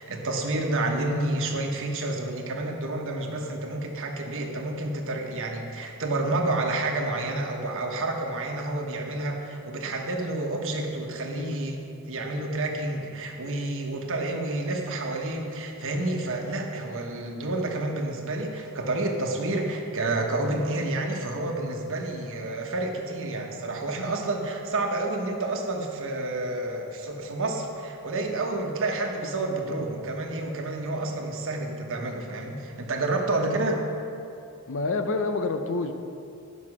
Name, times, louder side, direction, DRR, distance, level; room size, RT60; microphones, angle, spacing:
voice 1, 0.0-11.8 12.1-33.8, right 2 dB, 60° right, 2 dB, 1.1 m, -29 dB
voice 2, 34.7-35.9, left 3 dB, 60° left, 8 dB, 0.6 m, -28 dB
9.7 x 6.0 x 6.0 m, 2.6 s
head